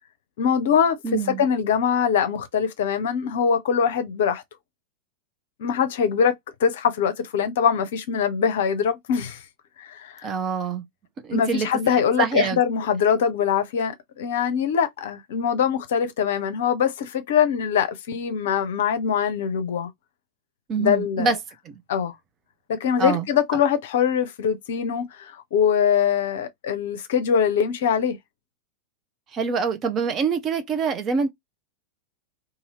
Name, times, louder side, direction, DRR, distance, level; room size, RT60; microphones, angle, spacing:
voice 1, 0.4-4.4 5.6-9.4 9.8-10.3 11.3-19.9 20.8-21.3 21.9-22.1 22.7-28.2, left 7 dB, 55° left, 0.6 m, -23 dB
voice 2, 1.0-1.5 10.2-10.8 11.2-11.7 12.2-12.6 20.7-21.4 21.7-21.8 23.0-23.3 29.3-31.3, right 5 dB, 30° right, 0.6 m, -25 dB
2.7 x 2.5 x 2.9 m
figure-of-eight pair, 90°, 0 cm